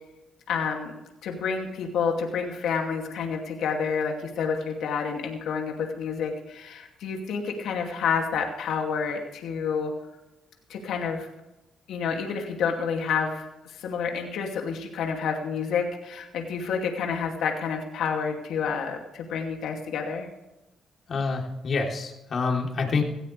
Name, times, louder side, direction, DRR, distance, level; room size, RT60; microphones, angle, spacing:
voice 1, 0.5-9.9 10.7-11.3 11.9-20.3, left 6 dB, 80° left, 2 dB, 2.5 m, -29 dB
voice 2, 21.1-23.0, left 4 dB, 50° left, 1 dB, 3.4 m, -27 dB
18.0 x 15.0 x 3.4 m, 0.96 s
cardioid pair, 90°, 0 cm